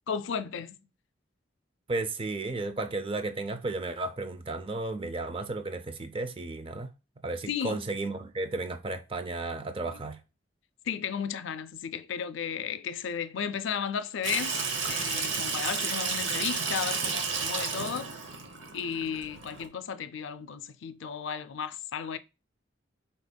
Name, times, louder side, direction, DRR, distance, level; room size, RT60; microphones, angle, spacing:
voice 1, 0.1-0.8 7.5-7.8 9.9-10.0 10.9-14.6 14.9-18.1 18.7-22.2, left 7 dB, 70° left, 0.4 m, -34 dB
voice 2, 1.9-6.9 7.2-10.2, right 2 dB, 25° right, 0.4 m, -33 dB
Water tap faucet / Sink (filling or washing), 14.2-19.7, right 5 dB, 70° right, 0.8 m, -32 dB
5.1 x 3.4 x 2.2 m
head